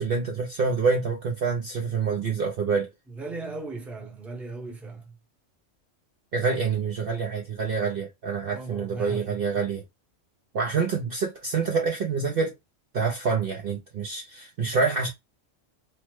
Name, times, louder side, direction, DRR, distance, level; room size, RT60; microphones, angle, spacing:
voice 1, 0.0-2.9 6.3-9.8 10.5-12.5 12.9-15.1, right 5 dB, 60° right, 0.6 m, -26 dB
voice 2, 3.1-5.1 8.5-9.4, right 3 dB, ahead, 0.6 m, -37 dB
3.1 x 2.1 x 3.0 m
omnidirectional pair, 1.4 m